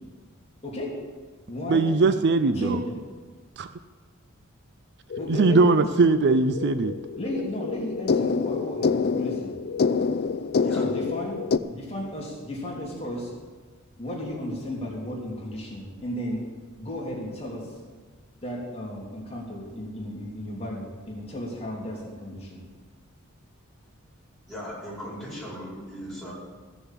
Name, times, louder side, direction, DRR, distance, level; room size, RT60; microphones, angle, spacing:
voice 1, 0.6-0.9 1.5-2.2 2.5-3.0 5.2-5.8 7.2-9.6 10.7-11.4 11.7-13.3 14.0-16.5 16.8-17.7 18.4-22.6, left 1 dB, 30° left, -4 dB, 3.0 m, -34 dB
voice 2, 1.7-2.8 3.6-3.7 5.3-6.9, right 3 dB, 55° right, 11 dB, 0.5 m, -20 dB
sound 1, 5.1-11.6, left 5 dB, 50° left, 0.4 m, -27 dB
voice 3, 24.4-26.3, equal, ahead, -8 dB, 4.9 m, -38 dB
15.0 x 6.9 x 7.4 m, 1.4 s
head